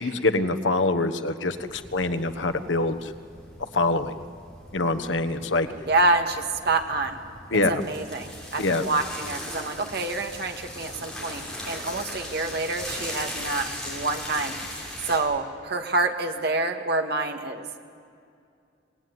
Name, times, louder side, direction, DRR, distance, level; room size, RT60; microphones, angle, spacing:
voice 1, 0.0-3.1 3.7-4.1 4.7-5.7 7.5-7.8 8.6-8.8, left 2 dB, 85° left, 8 dB, 1.3 m, -25 dB
sound 1, 1.5-15.2, left 1 dB, 5° left, 6.4 m, -39 dB
voice 2, 5.9-7.2 7.7-17.7, right 2 dB, 60° right, 4 dB, 1.8 m, -27 dB
26.0 x 19.0 x 9.6 m, 2.4 s
head